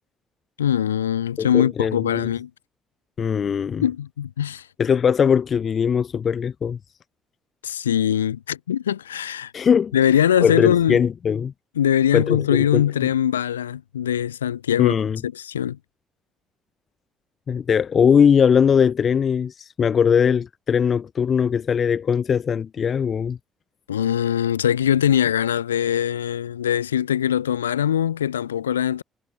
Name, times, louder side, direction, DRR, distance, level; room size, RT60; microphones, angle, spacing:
voice 1, 0.6-2.5 3.8-4.6 7.6-9.5 9.9-11.0 11.8-14.9 15.2-15.8 23.9-29.0, left 10 dB, 90° left, 1.0 m, -22 dB
voice 2, 1.4-2.3 3.2-3.8 4.8-6.8 9.5-10.0 10.4-11.5 12.1-12.8 14.8-15.2 17.5-23.4, left 7 dB, 50° left, 3.2 m, -20 dB
hypercardioid pair, 45°, 0 cm